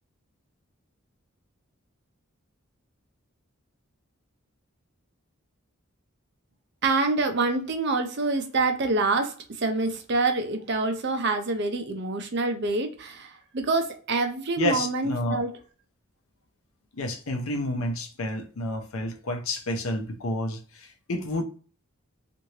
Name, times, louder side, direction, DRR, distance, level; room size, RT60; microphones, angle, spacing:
voice 1, 6.8-15.6, right 3 dB, 50° right, 0.6 m, -26 dB
voice 2, 14.6-15.4 17.0-21.4, left 1 dB, 75° left, 0.6 m, -30 dB
3.1 x 2.6 x 2.8 m
head